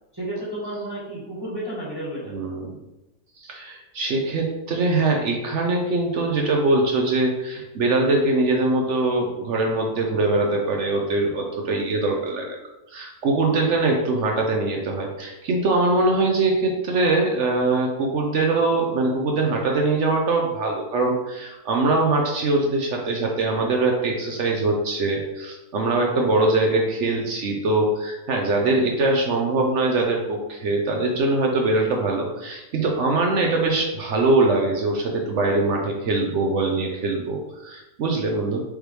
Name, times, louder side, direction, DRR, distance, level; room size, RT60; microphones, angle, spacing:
voice 1, 0.1-2.3, right 1 dB, 15° right, -7 dB, 1.4 m, -31 dB
voice 2, 2.3-2.8 3.4-12.5 12.9-38.6, right 2 dB, 70° right, 0 dB, 0.7 m, -22 dB
5.1 x 3.2 x 3.2 m, 0.99 s
omnidirectional pair, 1.9 m